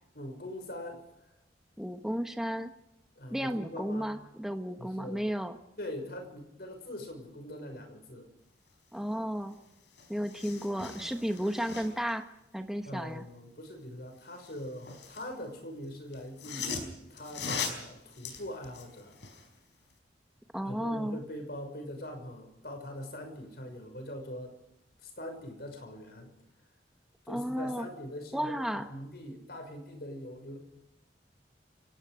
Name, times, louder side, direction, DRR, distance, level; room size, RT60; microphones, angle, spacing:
voice 1, 0.1-1.0 3.2-4.2 4.8-5.2 5.8-8.3 12.8-19.2 20.6-24.5 25.0-26.3 27.2-30.6, left 1 dB, 60° left, 5 dB, 6.0 m, -42 dB
voice 2, 1.8-2.7 3.3-5.6 8.9-9.5 10.1-12.2 12.5-13.2 20.5-21.2 27.3-27.9 28.3-28.9, equal, ahead, 6 dB, 1.2 m, -33 dB
sound 1, 9.5-9.6 9.9-12.1 14.3-15.3 16.1-19.5 19.9-20.0, left 5 dB, 85° left, 4.9 m, -40 dB
29.5 x 18.0 x 5.1 m, 0.84 s
head